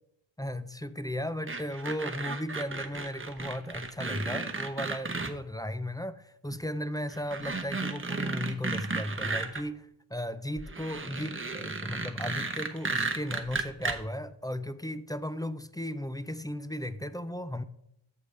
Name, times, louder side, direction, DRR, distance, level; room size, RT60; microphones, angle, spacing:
voice 1, 0.4-17.6, left 1 dB, 10° left, 0.4 m, -36 dB
sound 1, 1.5-5.3 6.5-6.6 7.1-9.6 10.6-14.0, right 3 dB, 25° right, 0.8 m, -34 dB
14.0 x 5.0 x 3.3 m
wide cardioid pair, 50°, 50 cm